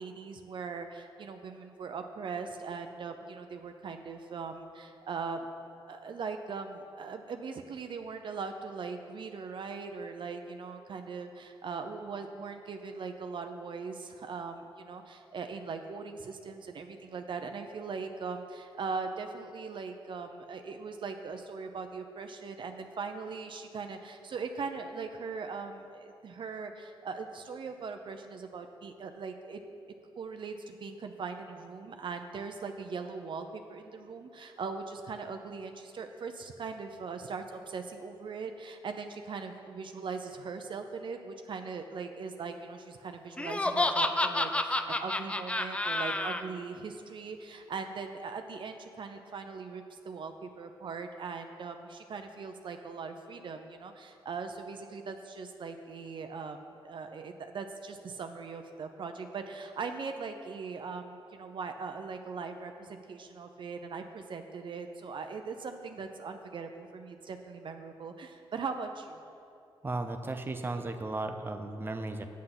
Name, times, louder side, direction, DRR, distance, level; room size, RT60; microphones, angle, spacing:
voice 1, 0.0-5.5 5.9-29.6 30.2-69.2, right 5 dB, 60° right, 6 dB, 0.6 m, -40 dB
Laughter, 43.4-46.4, left 2 dB, 10° left, 0.5 m, -29 dB
voice 2, 69.8-72.2, right 2 dB, 25° right, 6 dB, 0.7 m, -35 dB
8.4 x 7.7 x 5.9 m, 2.6 s
cardioid pair, 85°, 10 cm